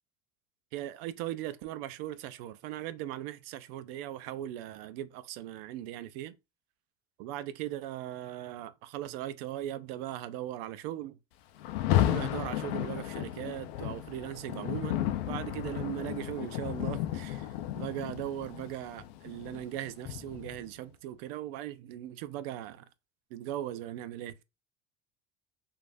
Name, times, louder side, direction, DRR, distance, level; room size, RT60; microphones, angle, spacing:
voice 1, 0.7-6.3 7.2-11.2 12.0-15.0 15.3-22.8 23.3-24.3, right 13 dB, 80° right, 0.5 m, -39 dB
Rain, 11.6-20.7, left 12 dB, 85° left, 0.4 m, -33 dB
3.2 x 2.5 x 2.5 m
supercardioid pair, 95°, 29 cm